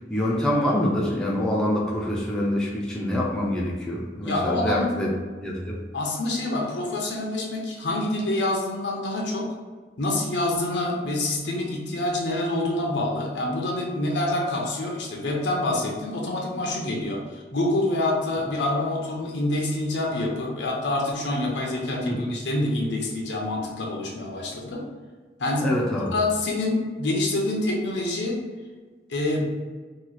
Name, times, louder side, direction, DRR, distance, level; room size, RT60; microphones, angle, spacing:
voice 1, 0.1-5.1 5.4-5.8 22.0-22.3 25.6-26.1, left 1 dB, 5° left, -4 dB, 0.4 m, -25 dB
voice 2, 4.2-4.9 5.9-9.5 10.0-24.8 25.4-28.4 29.1-29.5, left 2 dB, 80° left, -1 dB, 0.7 m, -26 dB
3.0 x 2.3 x 4.0 m, 1.4 s
head